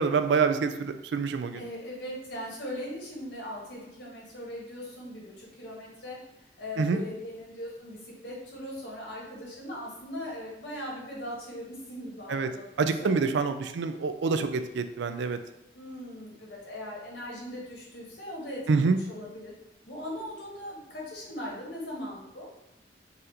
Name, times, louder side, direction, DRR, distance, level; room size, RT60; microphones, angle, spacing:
voice 1, 0.0-1.6 6.8-7.0 12.3-12.5 12.8-15.4 18.7-19.0, right 4 dB, 90° right, 9 dB, 0.4 m, -26 dB
voice 2, 1.5-6.2 6.6-13.7 15.7-19.5 19.9-22.5, left 1 dB, 75° left, -4 dB, 1.4 m, -39 dB
4.0 x 2.5 x 4.1 m, 0.90 s
head